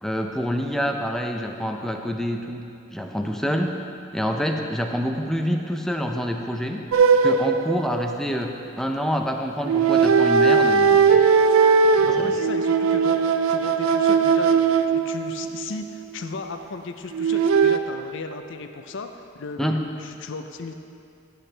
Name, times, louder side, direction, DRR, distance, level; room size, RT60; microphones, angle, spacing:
voice 1, 0.0-3.8 4.1-6.9 7.2-11.3 11.9-12.4 19.6-19.9, equal, ahead, 3 dB, 0.4 m, -27 dB
sound 1, 6.9-8.6 9.6-15.7 17.1-17.8, right 5 dB, 70° right, 0.4 m, -19 dB
voice 2, 12.0-19.1 19.3-20.7, left 3 dB, 60° left, 7 dB, 0.5 m, -35 dB
11.5 x 7.9 x 3.3 m, 2.7 s
head